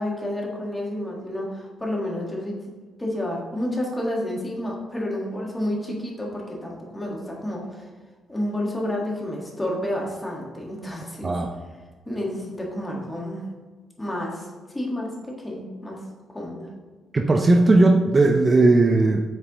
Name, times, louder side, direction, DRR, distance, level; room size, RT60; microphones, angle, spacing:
voice 1, 0.0-2.6 3.0-7.9 8.3-11.3 12.0-13.4 14.0-15.1 15.4-16.0 16.3-16.7, left 1 dB, 15° left, -2 dB, 1.6 m, -30 dB
voice 2, 17.1-19.2, right 2 dB, 30° right, 4 dB, 0.4 m, -17 dB
7.5 x 4.6 x 3.0 m, 1.4 s
cardioid pair, 90°, 0 cm